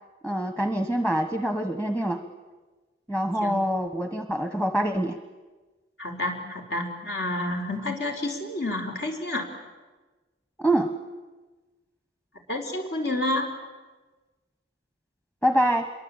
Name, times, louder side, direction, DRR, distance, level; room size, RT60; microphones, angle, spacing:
voice 1, 0.2-2.2 3.1-5.2 10.6-10.9 15.4-15.9, right 1 dB, 5° left, 7 dB, 1.1 m, -25 dB
voice 2, 6.0-9.4 12.5-13.5, left 1 dB, 65° left, 3 dB, 4.7 m, -29 dB
27.0 x 23.0 x 8.8 m, 1.3 s
head